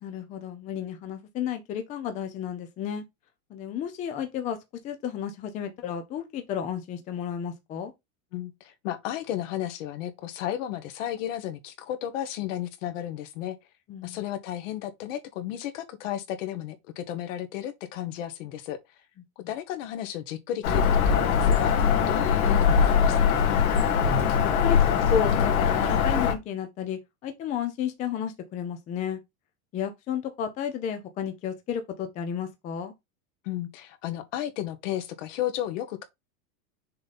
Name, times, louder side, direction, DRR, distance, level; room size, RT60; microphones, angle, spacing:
voice 1, 0.0-3.0 3.5-4.6 4.8-7.9 13.9-14.2 24.0-24.8 25.1-29.2 29.7-32.9, left 8 dB, 20° left, 0.5 m, -32 dB
voice 2, 8.3-13.6 14.0-18.8 19.5-23.6 33.4-36.0, left 12 dB, 60° left, 1.4 m, -33 dB
Bird vocalization bird call bird song, 20.6-26.3, left 7 dB, 75° left, 2.2 m, -22 dB
6.5 x 3.8 x 4.1 m
supercardioid pair, 170°, 43 cm